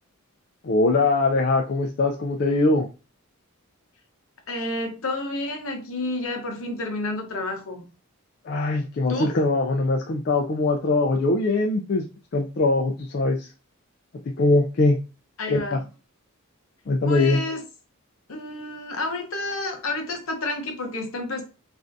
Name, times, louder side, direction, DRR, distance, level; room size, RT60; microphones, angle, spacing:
voice 1, 0.6-2.9 8.5-12.1 12.3-13.5 14.4-15.0 15.5-15.8 16.9-17.4, left 2 dB, 45° left, 1 dB, 0.3 m, -22 dB
voice 2, 4.5-7.9 9.1-9.3 15.4-15.8 17.0-17.6 18.3-21.4, left 2 dB, 65° left, 4 dB, 0.8 m, -30 dB
3.4 x 2.4 x 2.6 m, 0.31 s
head